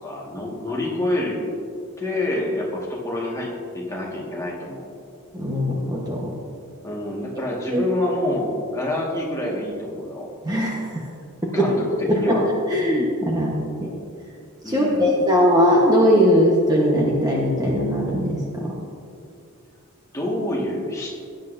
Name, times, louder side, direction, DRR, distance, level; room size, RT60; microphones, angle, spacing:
voice 1, 0.0-1.4 2.0-3.5 3.7-4.8 6.8-10.3 11.5-11.7 12.1-12.5 14.6-15.1 20.1-21.2, left 1 dB, 15° left, -4 dB, 1.8 m, -27 dB
voice 2, 5.3-6.3 7.7-7.8 10.4-11.0 11.6-11.7 12.1-12.4 12.7-13.9 14.6-18.7, equal, 15° right, -3 dB, 1.1 m, -20 dB
16.0 x 10.0 x 2.7 m, 2.4 s
head